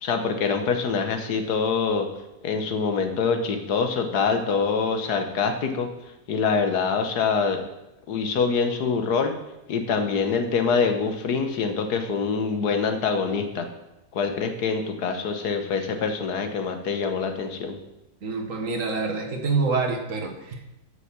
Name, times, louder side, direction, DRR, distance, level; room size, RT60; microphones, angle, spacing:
voice 1, 0.0-2.1 2.4-5.9 6.3-7.6 8.1-9.3 9.7-13.7 14.1-17.8, left 5 dB, 80° left, 6 dB, 1.6 m, -25 dB
voice 2, 18.2-20.7, right 4 dB, 55° right, 3 dB, 1.7 m, -26 dB
8.4 x 6.4 x 7.4 m, 0.94 s
omnidirectional pair, 1.7 m